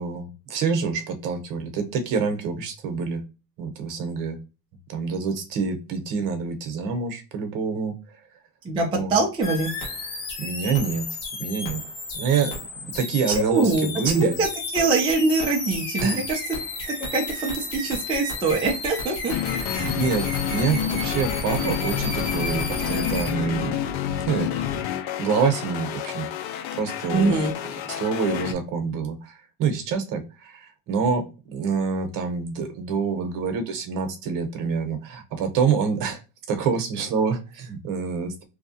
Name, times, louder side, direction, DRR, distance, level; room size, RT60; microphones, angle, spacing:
voice 1, 0.0-3.2 3.6-4.4 4.9-7.9 8.9-9.2 10.4-11.1 11.4-11.8 12.1-12.5 12.8-14.4 16.0-16.2 19.7-23.7 24.3-24.5 25.2-26.3 26.8-27.4 27.9-36.2 36.5-38.4, right 5 dB, 50° right, 6 dB, 0.9 m, -26 dB
voice 2, 8.6-9.7 13.5-14.5 14.7-16.6 16.9-19.3 19.8-20.0 27.1-27.5, right 3 dB, 15° right, -1 dB, 0.4 m, -23 dB
sound 1, 9.4-23.3, left 2 dB, 60° left, 1.2 m, -32 dB
sound 2, 19.3-28.5, left 10 dB, 85° left, 0.6 m, -29 dB
2.7 x 2.2 x 2.7 m, 0.30 s
cardioid pair, 155°, 41 cm